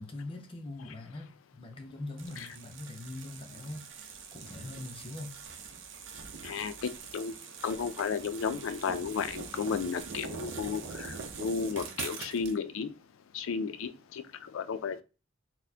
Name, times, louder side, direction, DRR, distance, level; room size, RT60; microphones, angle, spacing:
voice 1, 0.0-5.4, left 2 dB, 30° left, 0.5 m, -42 dB
sound 1, 2.2-12.6, right 5 dB, 70° right, 0.6 m, -43 dB
voice 2, 6.4-7.3 7.6-12.9 13.3-15.0, left 6 dB, 85° left, 0.4 m, -33 dB
4.1 x 2.1 x 2.7 m
head